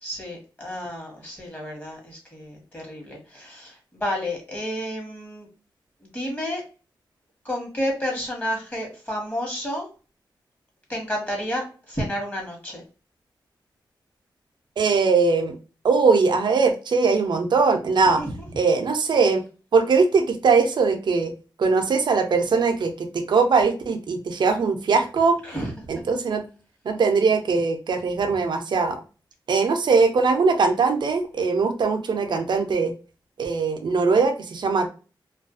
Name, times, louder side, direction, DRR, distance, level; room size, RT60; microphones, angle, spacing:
voice 1, 0.0-5.5 6.0-6.6 7.4-9.9 10.9-12.8 18.2-18.3 25.4-25.7, equal, 20° left, 0 dB, 1.1 m, -31 dB
voice 2, 14.8-15.6 15.8-18.2 18.6-19.4 19.7-21.3 21.6-25.4 25.9-26.4 26.8-29.0 29.5-32.9 33.4-34.9, right 4 dB, 65° right, 5 dB, 0.5 m, -21 dB
2.4 x 2.2 x 2.4 m, 0.34 s
cardioid pair, 80°, 8 cm